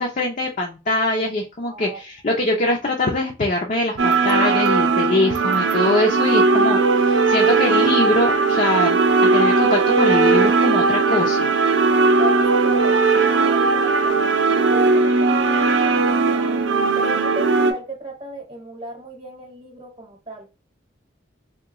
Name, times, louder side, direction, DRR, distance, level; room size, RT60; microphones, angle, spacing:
voice 1, 0.0-11.5, left 2 dB, 40° left, 0.5 m, -23 dB
voice 2, 1.6-2.0 12.2-13.1 13.4-16.6 17.0-20.4, right 1 dB, 30° right, 0.9 m, -36 dB
sound 1, 4.0-17.7, right 4 dB, 75° right, 0.6 m, -18 dB
3.6 x 2.2 x 2.9 m
head